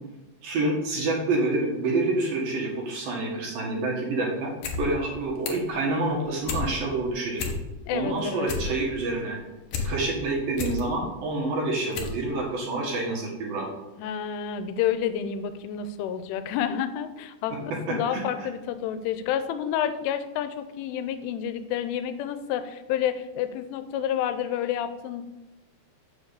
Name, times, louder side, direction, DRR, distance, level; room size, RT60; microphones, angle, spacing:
voice 1, 0.4-7.4 7.9-9.4 9.8-13.7 17.5-18.2, right 2 dB, 60° right, -2 dB, 2.9 m, -28 dB
sound 1, 4.4-4.8 5.1-5.7 6.1-6.7 7.0-7.1 7.3-7.9 8.2-9.9 10.3-10.8 11.4-11.5 11.9-12.2 12.5-12.6, left 5 dB, 75° left, 2.0 m, -32 dB
voice 2, 7.9-8.5 14.0-25.2, left 9 dB, 90° left, 11 dB, 3.1 m, -29 dB
7.2 x 7.2 x 6.9 m, 1.1 s
omnidirectional pair, 5.5 m